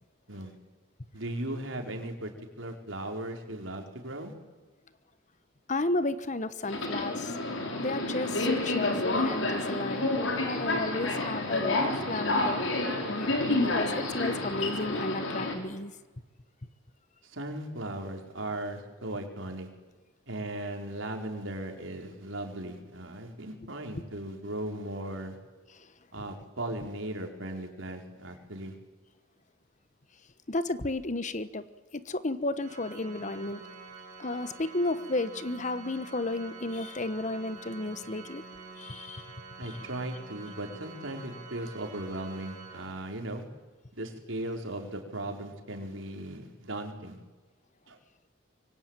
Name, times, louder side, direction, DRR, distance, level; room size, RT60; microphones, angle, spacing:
voice 1, 1.1-2.3 2.6-4.3 17.2-19.7 20.3-25.4 26.1-28.7 39.6-43.4 43.9-47.2 47.9-48.0, right 1 dB, 75° right, 4 dB, 4.5 m, -37 dB
voice 2, 5.7-7.4 7.8-10.1 10.4-12.7 13.1-15.9 25.7-25.9 26.2-26.3 30.5-31.6 31.9-33.6 34.2-38.4 38.8-39.3 39.6-39.7, left 2 dB, 40° left, 13 dB, 1.2 m, -33 dB
Subway metro underground, 6.6-15.5, left 2 dB, 75° left, 5.2 m, -29 dB
Organ, 32.6-43.4, right 4 dB, 40° right, 5.6 m, -47 dB
25.5 x 23.5 x 9.1 m, 1.2 s
head